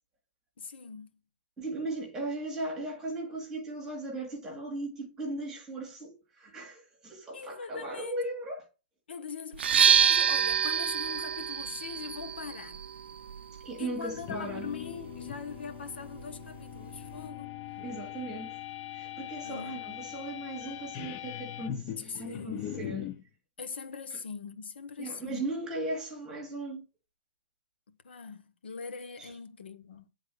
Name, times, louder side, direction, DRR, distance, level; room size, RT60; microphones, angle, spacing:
voice 1, 0.6-1.1 7.3-8.2 9.1-12.8 13.8-17.5 19.4-19.8 22.0-22.6 23.6-25.4 28.0-30.1, left 5 dB, 75° left, 1.4 m, -41 dB
voice 2, 1.6-8.7 13.6-14.7 17.8-18.6 18.9-23.1 25.0-26.8, right 2 dB, 10° right, 2.3 m, -37 dB
sound 1, 9.5-17.3, right 8 dB, 75° right, 0.4 m, -29 dB
sound 2, 14.1-23.2, left 11 dB, 20° left, 0.5 m, -41 dB
9.1 x 4.0 x 6.3 m
hypercardioid pair, 170°, 6 cm